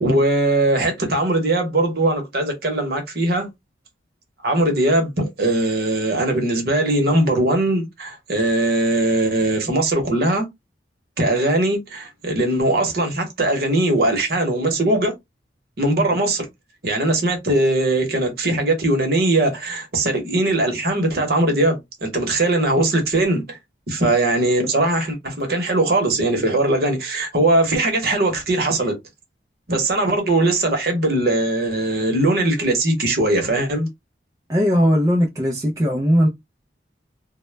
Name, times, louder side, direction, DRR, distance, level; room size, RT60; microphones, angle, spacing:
voice 1, 0.0-3.5 4.4-10.5 11.2-15.1 15.8-16.4 16.8-23.6 23.9-28.9 29.7-33.9, right 1 dB, 55° right, 0.9 m, -20 dB
voice 2, 34.5-36.3, equal, 15° right, 0.3 m, -18 dB
2.1 x 2.1 x 3.2 m
head